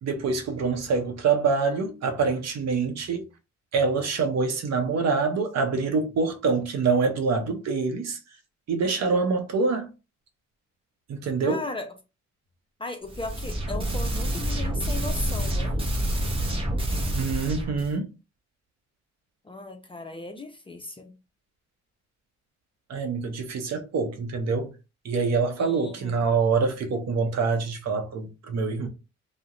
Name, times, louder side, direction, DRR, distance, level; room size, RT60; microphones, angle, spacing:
voice 1, 0.0-3.3 3.7-8.2 8.7-9.9 11.1-11.6 17.1-18.1 22.9-24.7 25.0-28.9, right 4 dB, 60° right, 0.7 m, -25 dB
voice 2, 11.4-11.9 12.8-15.8 19.4-21.1 25.6-26.3, left 2 dB, 20° left, 0.4 m, -36 dB
sound 1, 13.1-17.9, right 1 dB, 20° right, 0.8 m, -28 dB
2.3 x 2.1 x 2.9 m
cardioid pair, 90°, 30 cm